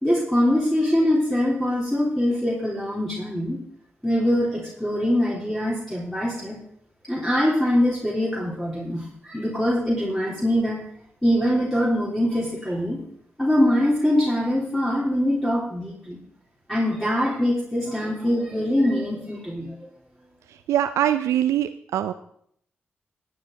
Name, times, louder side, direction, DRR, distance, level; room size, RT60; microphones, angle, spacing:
voice 1, 0.0-3.6 4.0-6.5 7.1-10.8 11.2-13.0 13.4-16.2 16.7-19.7, left 1 dB, 5° left, -6 dB, 3.4 m, -23 dB
voice 2, 20.7-22.1, right 11 dB, 85° right, 10 dB, 0.3 m, -22 dB
15.5 x 8.6 x 3.9 m, 0.67 s
supercardioid pair, 40°, 5 cm